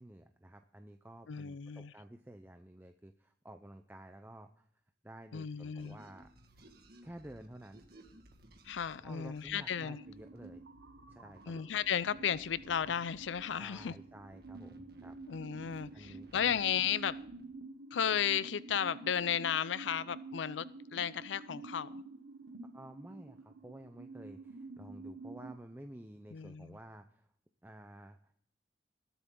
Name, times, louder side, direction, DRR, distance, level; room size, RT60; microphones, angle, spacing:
voice 1, 0.0-4.7 5.0-6.3 7.0-7.9 9.0-10.6 11.1-11.7 13.6-15.2 15.9-16.6 22.7-27.3 27.6-28.5, right 1 dB, 10° right, 0.6 m, -52 dB
voice 2, 1.3-1.9 5.3-6.0 8.6-10.0 11.5-13.9 15.3-17.2 17.9-20.7 20.9-22.0 26.3-26.8, left 8 dB, 85° left, 0.5 m, -34 dB
sound 1, 5.8-17.5, right 1 dB, 55° right, 1.9 m, -60 dB
sound 2, 9.7-25.5, right 3 dB, 85° right, 0.9 m, -50 dB
20.5 x 8.0 x 3.8 m
head